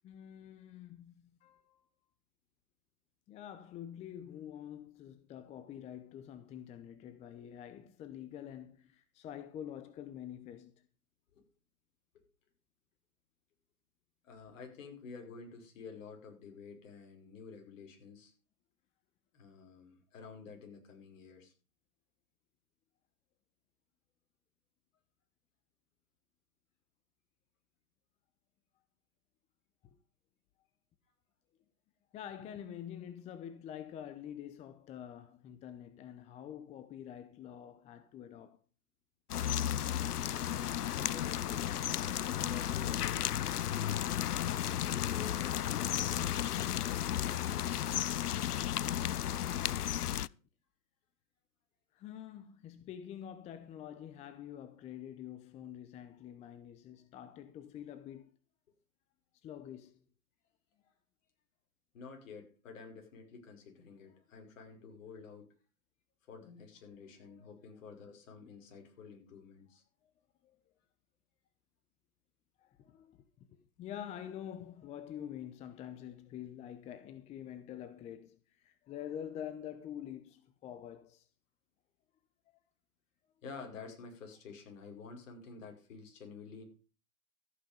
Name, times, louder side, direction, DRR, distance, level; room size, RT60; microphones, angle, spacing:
voice 1, 0.0-1.8 3.3-10.7 29.8-29.9 32.1-38.6 51.9-58.3 59.4-60.0 64.1-64.2 67.4-67.6 70.4-70.6 72.6-73.2 73.5-81.3, left 10 dB, 15° left, 0.7 m, -47 dB
voice 2, 14.2-18.3 19.3-21.5 41.0-44.0 44.8-46.6 53.9-54.0 61.9-65.5 66.3-69.8 83.4-86.6, left 5 dB, 60° left, 5.6 m, -50 dB
sound 1, 39.3-50.3, left 11 dB, 90° left, 0.5 m, -33 dB
14.0 x 9.1 x 5.3 m
hypercardioid pair, 125°, 45 cm